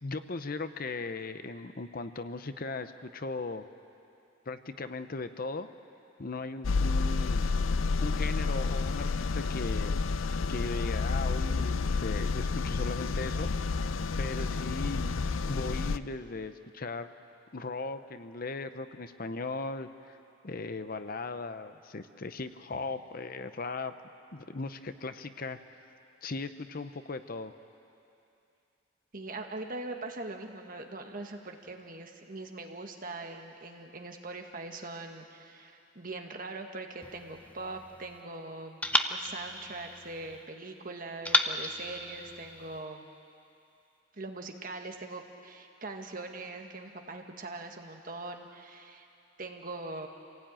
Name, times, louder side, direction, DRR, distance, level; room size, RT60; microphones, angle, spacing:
voice 1, 0.0-3.6 4.5-5.7 6.2-7.5 8.0-10.0 10.5-15.2 15.5-17.1 17.5-20.2 20.4-23.9 24.3-25.6 26.2-27.5, left 3 dB, 45° left, 10 dB, 0.8 m, -38 dB
sound 1, 6.6-16.0, left 4 dB, 90° left, 0.6 m, -30 dB
voice 2, 29.1-38.8 39.1-43.0 44.1-49.1 49.4-50.1, right 2 dB, 45° right, 3 dB, 1.7 m, -42 dB
sound 2, 37.0-38.2 38.8-40.4 41.2-42.8, left 1 dB, 5° left, 0.7 m, -33 dB
26.5 x 17.0 x 9.1 m, 2.7 s
head